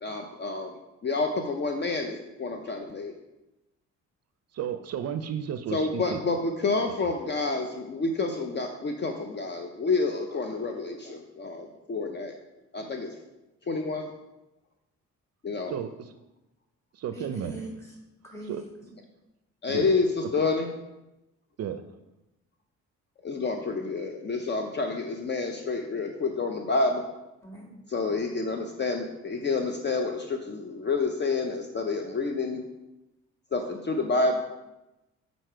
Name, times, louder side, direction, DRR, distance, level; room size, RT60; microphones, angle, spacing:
voice 1, 0.0-3.1 5.7-12.3 12.7-13.2 13.7-14.1 15.4-15.8 19.6-20.7 23.2-27.0 27.9-32.6 33.5-34.3, left 3 dB, 35° left, 4 dB, 0.6 m, -29 dB
voice 2, 4.5-6.2 6.9-7.1 15.7-16.1 16.9-17.5 18.5-18.6 19.7-19.9 21.6-21.8, right 9 dB, 55° right, 10 dB, 0.5 m, -33 dB
voice 3, 17.1-18.0 18.2-19.0 27.4-27.7 34.2-34.4, right 2 dB, 10° left, -1 dB, 2.0 m, -42 dB
6.5 x 4.0 x 4.5 m, 0.97 s
cardioid pair, 90°, 30 cm